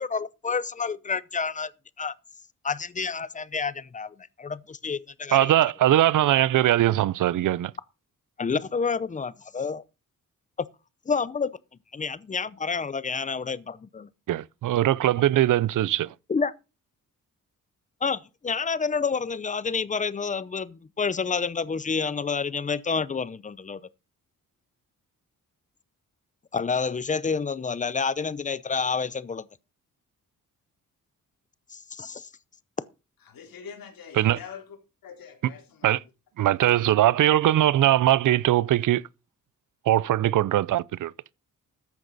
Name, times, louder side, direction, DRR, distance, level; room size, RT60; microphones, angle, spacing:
voice 1, 0.0-1.7 2.0-2.1 2.6-5.5 8.4-9.8 11.1-11.5 11.9-14.1 16.3-16.5 18.0-23.8 26.5-29.5 31.7-32.3, left 5 dB, 20° left, 0.6 m, -29 dB
voice 2, 5.3-7.7 14.3-16.1 34.2-34.4 35.8-36.0 36.4-39.0 39.9-41.1, right 13 dB, 65° right, 0.6 m, -21 dB
voice 3, 33.3-34.6 35.0-36.0 36.4-36.5, left 7 dB, 90° left, 3.8 m, -44 dB
14.0 x 10.5 x 4.0 m
wide cardioid pair, 180°, 33 cm